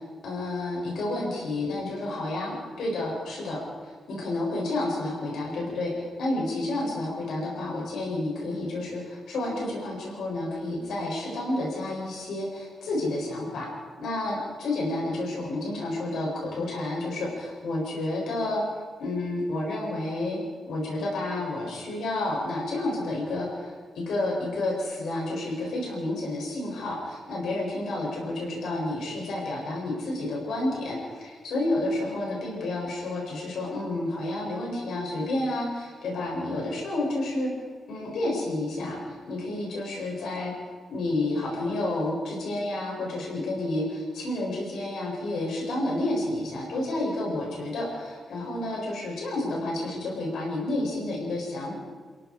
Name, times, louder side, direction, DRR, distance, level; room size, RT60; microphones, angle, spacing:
voice 1, 0.0-3.6 4.1-13.7 14.0-18.6 19.0-20.4 20.7-37.5 37.9-40.5 40.9-51.7, left 2 dB, 85° left, -3 dB, 7.7 m, -30 dB
29.5 x 18.0 x 5.0 m, 1.5 s
cardioid pair, 95°, 0 cm